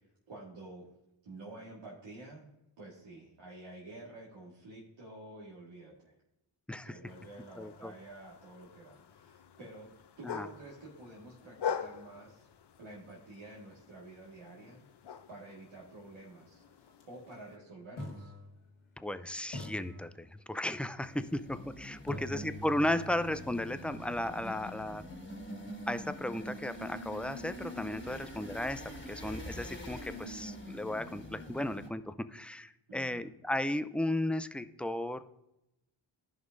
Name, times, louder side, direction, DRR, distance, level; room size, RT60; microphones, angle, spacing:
voice 1, 0.3-0.9 1.2-2.5 2.8-6.1 6.7-12.5 12.8-14.9 15.3-16.6 17.1-18.3 28.1-28.4 32.9-33.3, right 2 dB, 75° right, -4 dB, 1.9 m, -50 dB
sound 1, 7.1-17.6, left 8 dB, 55° left, 0.7 m, -45 dB
voice 2, 7.6-7.9 10.2-10.5 19.0-25.0 25.9-35.3, left 1 dB, 5° left, 12 dB, 0.3 m, -35 dB
sound 2, 16.9-17.0 18.0-19.1 19.5-20.8 22.1-26.0, left 1 dB, 80° left, 1.7 m, -47 dB
sound 3, 21.0-31.9, equal, 25° left, 1.7 m, -45 dB
14.5 x 5.4 x 2.6 m, 0.87 s
cardioid pair, 55°, 49 cm